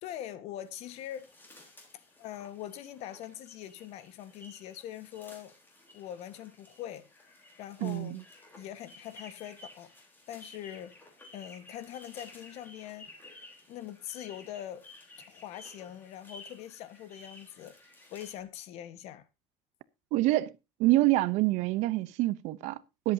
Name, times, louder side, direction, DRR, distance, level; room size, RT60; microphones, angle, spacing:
voice 1, 0.0-1.3 2.2-5.5 5.9-7.1 7.6-8.2 8.6-9.9 10.3-11.0 11.3-13.1 13.7-14.9 15.3-19.3, left 11 dB, 60° left, 1.4 m, -43 dB
sound 1, 0.6-18.4, left 2 dB, 15° left, 3.7 m, -54 dB
voice 2, 7.8-8.2 20.1-20.5 20.8-23.1, right 17 dB, 65° right, 0.7 m, -26 dB
21.0 x 8.1 x 2.7 m
cardioid pair, 175°, 13 cm